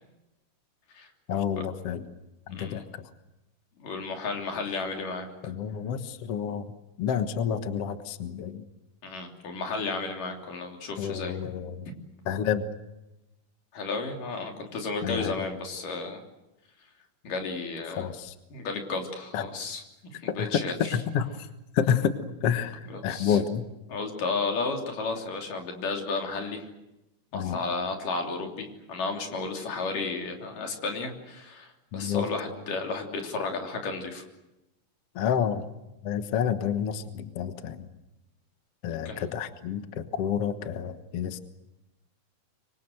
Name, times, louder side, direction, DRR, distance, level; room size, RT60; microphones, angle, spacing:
voice 1, 1.3-2.1 2.5-2.8 5.4-6.7 7.0-8.7 11.0-11.9 12.3-12.6 15.0-15.4 17.9-18.3 19.3-19.5 20.4-21.3 21.7-22.2 22.4-23.6 27.3-27.6 31.9-32.3 35.2-35.7 36.0-37.9 38.8-41.4, left 8 dB, 55° left, 9 dB, 2.1 m, -29 dB
voice 2, 2.5-2.8 3.8-5.5 9.0-11.4 13.7-16.2 17.2-18.1 18.5-19.8 20.1-21.0 22.9-23.4 23.9-26.7 27.3-34.2 39.1-39.3, left 3 dB, 85° left, 3 dB, 4.8 m, -33 dB
25.5 x 24.5 x 7.9 m, 0.94 s
omnidirectional pair, 3.7 m